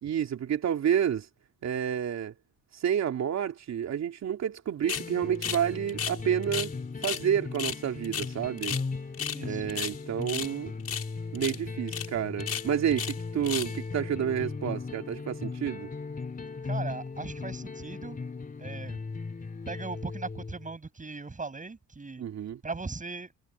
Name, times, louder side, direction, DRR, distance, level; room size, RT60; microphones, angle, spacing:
voice 1, 0.0-1.3 1.6-2.3 2.7-6.7 7.0-8.8 9.4-10.7 11.3-15.9 22.2-22.6, right 9 dB, 60° right, 3.0 m, -29 dB
sound 1, 4.8-20.8, left 4 dB, 30° left, 3.0 m, -38 dB
sound 2, 4.9-5.1 5.4-5.6 5.9-6.7 7.0-7.2 7.5-8.9 9.1-9.4 9.7-10.5 10.8-11.1 11.3-11.6 11.9-12.1 12.4-13.2 13.4-13.8, left 8 dB, 55° left, 6.6 m, -34 dB
voice 2, 9.3-9.7 16.6-18.2 18.6-19.0 19.7-22.2 22.6-23.3, right 4 dB, 25° right, 8.0 m, -38 dB
cardioid pair, 90°, 30 cm